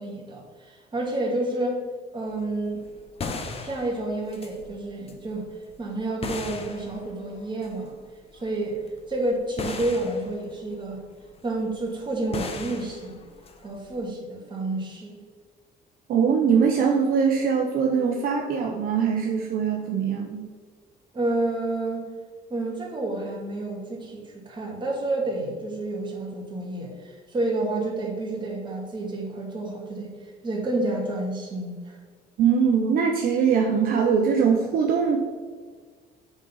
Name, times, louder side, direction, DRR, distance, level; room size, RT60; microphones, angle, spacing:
voice 1, 0.0-1.8 2.1-2.8 3.6-5.5 5.8-7.9 8.3-8.8 9.1-11.0 11.4-13.2 13.6-15.2 21.1-22.1 22.5-30.1 30.4-32.0, right 2 dB, 30° right, -1 dB, 2.1 m, -29 dB
sound 1, 2.3-14.0, left 4 dB, 35° left, 0.9 m, -38 dB
voice 2, 16.1-20.5 32.4-35.2, right 6 dB, 60° right, 2 dB, 0.8 m, -22 dB
7.2 x 4.1 x 5.5 m, 1.5 s
cardioid pair, 110°, 17 cm